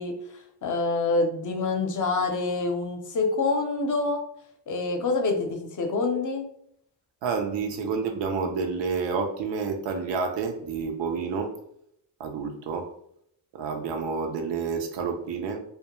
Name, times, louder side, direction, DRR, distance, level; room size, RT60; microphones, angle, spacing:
voice 1, 0.0-4.2 4.7-6.5, left 3 dB, 45° left, 3 dB, 0.6 m, -26 dB
voice 2, 7.2-11.5 12.2-12.9 13.5-15.6, right 5 dB, 85° right, 4 dB, 0.6 m, -29 dB
2.2 x 2.1 x 2.9 m, 0.71 s
cardioid pair, 95°, 43 cm